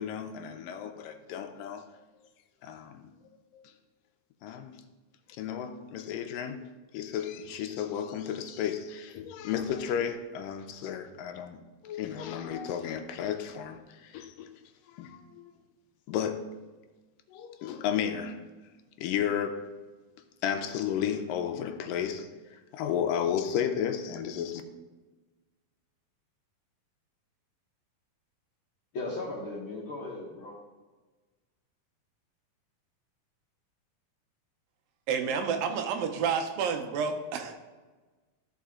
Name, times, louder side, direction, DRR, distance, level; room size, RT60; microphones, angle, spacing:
voice 1, 0.0-1.9 2.6-3.1 3.5-3.6 4.4-4.8 5.4-6.7 6.9-14.5 14.9-15.5 16.1-16.5 17.3-18.4 19.0-19.7 20.4-24.6, left 8 dB, 85° left, 7 dB, 2.3 m, -33 dB
voice 2, 28.9-30.5, left 2 dB, 60° left, -4 dB, 1.3 m, -37 dB
voice 3, 35.1-37.5, right 6 dB, 90° right, 6 dB, 2.6 m, -29 dB
14.0 x 4.7 x 3.7 m, 1.3 s
omnidirectional pair, 4.0 m